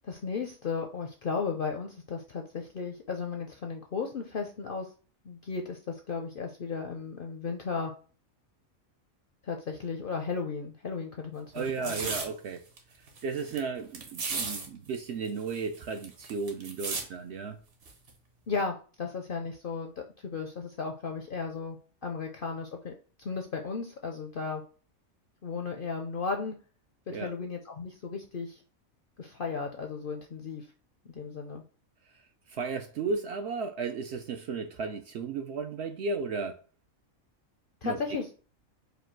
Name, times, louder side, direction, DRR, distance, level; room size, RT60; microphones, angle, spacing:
voice 1, 0.0-4.9 5.2-7.9 9.4-11.9 18.5-24.6 25.4-26.5 27.1-28.6 29.2-30.7 31.1-31.6 37.8-38.3, left 5 dB, 60° left, 0.6 m, -35 dB
voice 2, 11.5-12.6 13.2-17.6 27.1-27.3 32.5-36.6 37.8-38.0, right 4 dB, 65° right, 0.7 m, -34 dB
sound 1, 11.6-12.3 12.8-12.9 13.1-13.6 13.9-14.7 14.9-15.0 15.2-17.0 17.9-18.1, right 4 dB, 45° right, 1.0 m, -35 dB
5.0 x 2.3 x 4.4 m
omnidirectional pair, 1.5 m